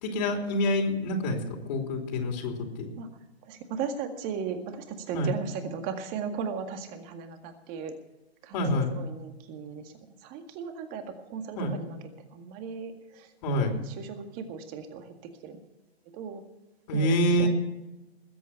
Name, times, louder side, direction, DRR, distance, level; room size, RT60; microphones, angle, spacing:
voice 1, 0.0-2.9 5.1-5.3 8.5-8.9 11.5-11.7 13.4-13.7 16.9-17.5, left 1 dB, 40° left, 2 dB, 3.3 m, -27 dB
voice 2, 3.4-8.0 8.4-12.0 12.3-13.3 13.7-15.6 16.1-16.4 16.9-17.5, right 6 dB, 25° right, 7 dB, 1.9 m, -37 dB
20.5 x 8.3 x 5.7 m, 1.0 s
hypercardioid pair, 135°, 32 cm